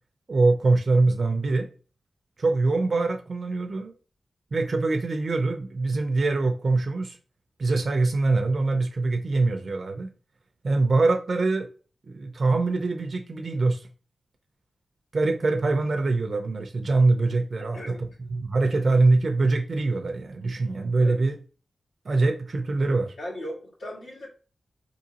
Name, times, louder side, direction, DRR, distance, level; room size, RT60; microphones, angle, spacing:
voice 1, 0.3-1.7 2.4-3.9 4.5-7.2 7.6-10.1 10.6-11.7 12.1-13.9 15.1-21.4 22.0-23.1, right 3 dB, 55° right, 0.4 m, -23 dB
voice 2, 17.6-18.0 18.5-18.7 21.0-21.1 23.2-24.3, equal, 85° left, 1.6 m, -38 dB
3.8 x 2.7 x 2.7 m
wide cardioid pair, 105°, 0 cm